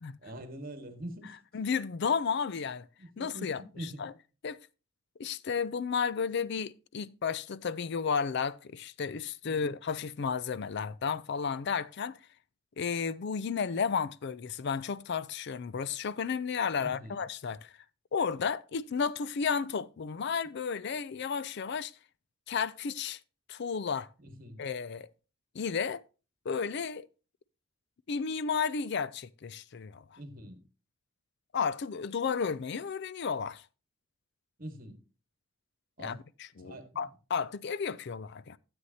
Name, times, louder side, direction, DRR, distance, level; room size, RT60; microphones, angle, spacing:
voice 1, 0.2-1.4 3.0-4.1 9.5-9.7 16.8-17.2 24.2-24.6 30.2-30.6 34.6-35.0 36.0-36.2 36.6-37.0, right 1 dB, 45° right, 1.6 m, -44 dB
voice 2, 1.5-2.9 3.2-4.1 4.4-4.6 5.2-12.2 12.8-17.7 18.1-21.9 22.5-23.2 23.5-24.1 24.6-25.1 25.5-26.0 26.5-27.1 28.1-30.2 31.5-33.6 36.0-38.6, left 6 dB, 55° left, 0.4 m, -33 dB
12.5 x 8.0 x 2.8 m
head